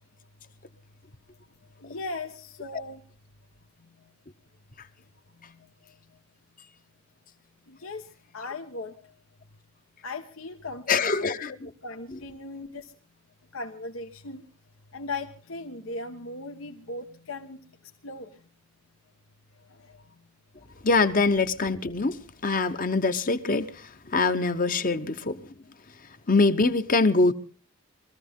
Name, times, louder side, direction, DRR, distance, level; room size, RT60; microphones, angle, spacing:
voice 1, 1.8-3.0 3.8-3.9 5.4-5.7 7.7-8.1 8.3-9.1 10.0-11.6 11.8-12.9 13.5-14.4 14.9-17.7 18.0-18.3 19.7-20.0 20.7-20.8 24.5-24.9, left 3 dB, 80° left, 1.2 m, -38 dB
voice 2, 10.9-11.7 20.8-23.7 24.1-25.4 26.3-27.3, left 3 dB, 40° left, 1.0 m, -23 dB
23.0 x 14.5 x 3.7 m
head